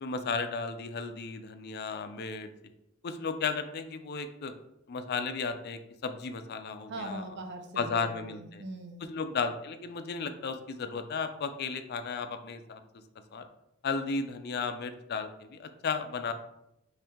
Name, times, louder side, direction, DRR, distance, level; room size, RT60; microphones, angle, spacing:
voice 1, 0.0-2.5 3.0-4.5 4.9-7.2 7.8-8.6 9.1-12.8 13.3-13.4 13.8-16.3, left 5 dB, 50° left, 9 dB, 0.4 m, -34 dB
voice 2, 6.9-9.1, right 2 dB, 55° right, 6 dB, 0.6 m, -41 dB
5.6 x 2.6 x 3.6 m, 0.85 s
head